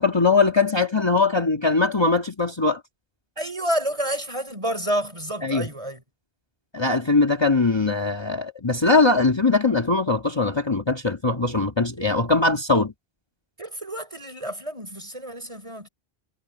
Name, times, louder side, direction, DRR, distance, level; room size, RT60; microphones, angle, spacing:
voice 1, 0.0-2.8 5.4-5.7 6.7-12.9, left 3 dB, 25° left, 1.7 m, -21 dB
voice 2, 3.4-6.0 13.6-15.9, equal, 30° right, 5.4 m, -29 dB
omnidirectional pair, 1.1 m